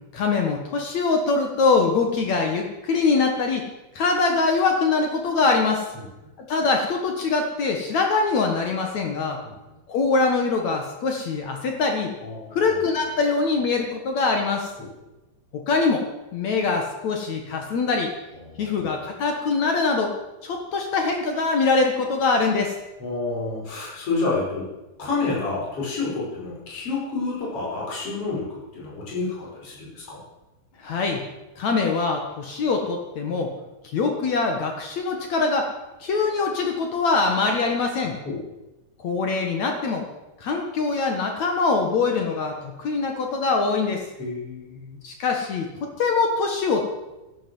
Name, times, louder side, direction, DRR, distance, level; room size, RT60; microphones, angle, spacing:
voice 1, 0.1-3.6 3.9-5.9 6.4-9.4 9.9-12.1 12.5-14.7 15.5-16.1 16.3-18.1 18.6-20.1 20.4-22.8 30.8-31.2 31.6-33.5 33.8-35.7 36.0-38.1 39.0-40.0 40.4-44.0 45.0-46.8, left 4 dB, 55° left, 3 dB, 2.5 m, -23 dB
voice 2, 12.2-12.6 18.4-18.7 23.0-24.7 25.0-30.2 38.2-38.4 44.2-45.0, left 3 dB, 35° left, -5 dB, 6.2 m, -29 dB
13.5 x 12.0 x 7.8 m, 1.0 s
omnidirectional pair, 4.5 m